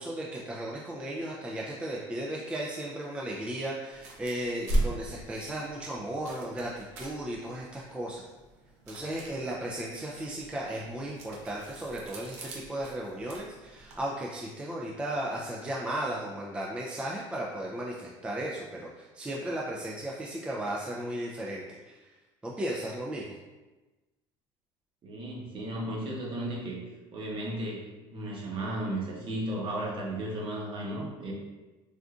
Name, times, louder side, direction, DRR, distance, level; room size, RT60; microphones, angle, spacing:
voice 1, 0.0-8.2 8.9-22.1 22.4-23.2, right 1 dB, 10° right, -3 dB, 0.3 m, -35 dB
sound 1, 3.9-14.0, right 1 dB, 70° right, 0.7 m, -38 dB
voice 2, 25.0-26.8 27.1-31.3, right 1 dB, 40° right, -3 dB, 0.9 m, -34 dB
3.5 x 2.5 x 2.4 m, 1.2 s
supercardioid pair, 105°, 13 cm